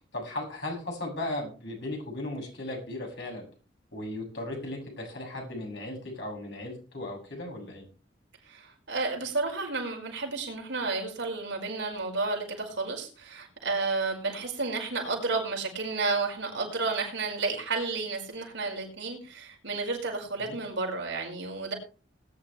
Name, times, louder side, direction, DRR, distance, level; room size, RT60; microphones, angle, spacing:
voice 1, 0.1-3.4 3.9-7.8 20.4-20.6, left 1 dB, 65° left, 0 dB, 7.6 m, -36 dB
voice 2, 8.4-21.7, right 3 dB, 70° right, 1 dB, 5.1 m, -31 dB
20.0 x 10.5 x 3.4 m, 0.35 s
head